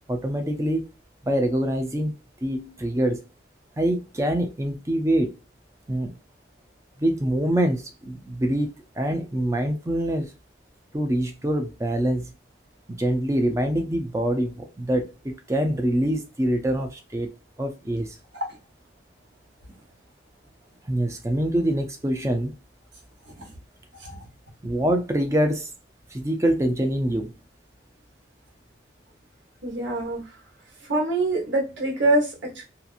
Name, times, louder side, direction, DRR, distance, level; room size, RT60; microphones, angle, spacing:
voice 1, 0.1-0.9 1.2-2.1 2.4-3.2 3.8-5.3 5.9-6.1 7.0-10.3 10.9-12.3 12.9-17.3 17.6-18.2 20.9-22.5 24.6-25.7 26.1-27.3, right 1 dB, 15° right, 0.4 m, -25 dB
voice 2, 29.6-30.2 30.9-32.6, right 2 dB, 75° right, 1.2 m, -24 dB
2.8 x 2.5 x 2.4 m
head